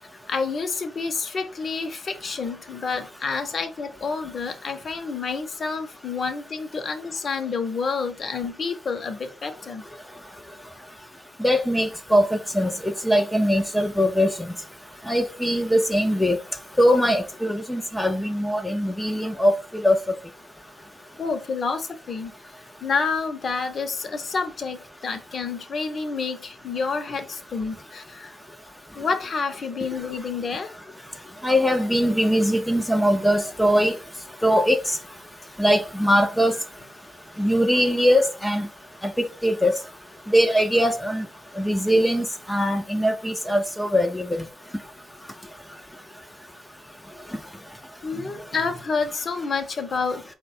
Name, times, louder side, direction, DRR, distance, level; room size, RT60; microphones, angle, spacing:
voice 1, 0.3-9.8 21.2-22.3 22.8-28.3 28.9-30.7 48.0-50.2, left 4 dB, 45° left, 0.8 m, -29 dB
voice 2, 11.4-14.5 15.1-16.4 16.8-19.5 19.8-20.0 31.4-34.0 34.4-35.0 35.6-36.5 37.4-38.7 39.0-39.7 40.3-41.2 41.6-44.3, equal, 5° left, 0.5 m, -21 dB
4.5 x 2.2 x 4.2 m
cardioid pair, 90°, 0 cm